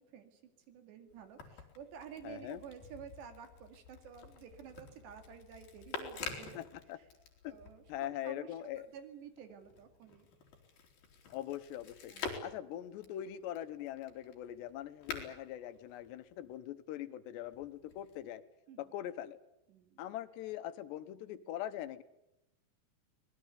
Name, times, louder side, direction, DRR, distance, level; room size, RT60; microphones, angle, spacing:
voice 1, 0.0-6.6 7.5-10.3 12.1-12.5 18.7-18.9 19.7-20.0, right 8 dB, 85° right, 7 dB, 4.6 m, -52 dB
sound 1, 1.1-8.1 8.5-16.6 17.4-18.2, left 5 dB, 60° left, 5.0 m, -48 dB
voice 2, 2.2-2.6 6.6-7.0 7.4-7.6 7.9-8.9 11.3-18.4 18.8-19.4 20.0-22.0, left 12 dB, 90° left, 12 dB, 3.3 m, -42 dB
25.0 x 20.0 x 8.3 m, 0.85 s
omnidirectional pair, 4.8 m